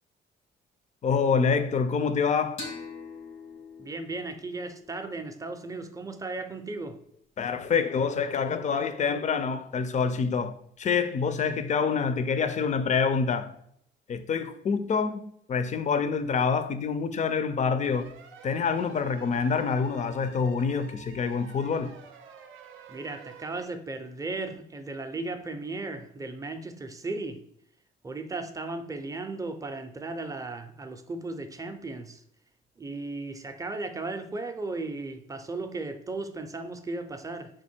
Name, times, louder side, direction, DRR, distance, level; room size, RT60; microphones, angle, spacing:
voice 1, 1.0-2.7 7.4-13.5 14.1-18.1 18.4-21.9, left 5 dB, 35° left, 0.4 m, -26 dB
sound 1, 2.6-5.9, left 4 dB, 90° left, 1.2 m, -44 dB
voice 2, 3.8-7.0 22.9-27.4 28.0-32.2 32.8-37.5, right 3 dB, 15° right, 0.5 m, -36 dB
sound 2, 17.8-23.7, right 5 dB, 85° right, 0.5 m, -49 dB
3.5 x 2.5 x 4.4 m
cardioid pair, 90°, 20 cm